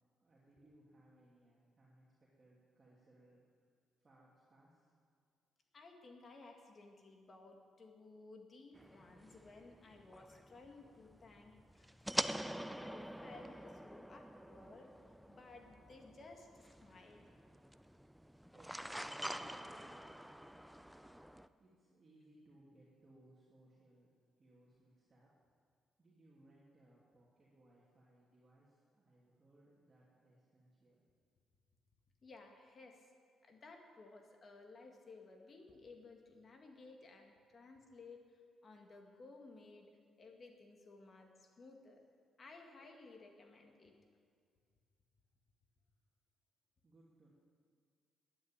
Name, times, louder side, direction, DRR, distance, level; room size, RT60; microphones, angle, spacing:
voice 1, 0.2-3.4 4.0-4.9 18.5-24.1 24.4-25.3 26.0-31.1 46.8-47.3, right 1 dB, 30° right, -6 dB, 2.7 m, -67 dB
voice 2, 5.7-14.9 15.3-17.4 32.2-33.1 33.4-42.0 42.4-44.0, left 3 dB, 40° left, 3 dB, 1.9 m, -57 dB
sound 1, 8.7-21.5, equal, 5° right, 0.5 m, -46 dB
11.0 x 9.7 x 8.8 m, 2.1 s
cardioid pair, 90°, 0 cm